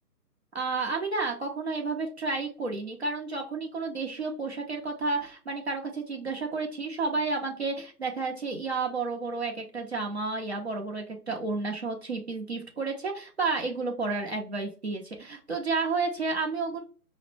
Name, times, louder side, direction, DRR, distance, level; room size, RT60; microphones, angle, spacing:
voice 1, 0.5-16.8, right 3 dB, 40° right, 1 dB, 0.7 m, -31 dB
5.6 x 2.0 x 3.2 m, 0.38 s
figure-of-eight pair, 155°, 48 cm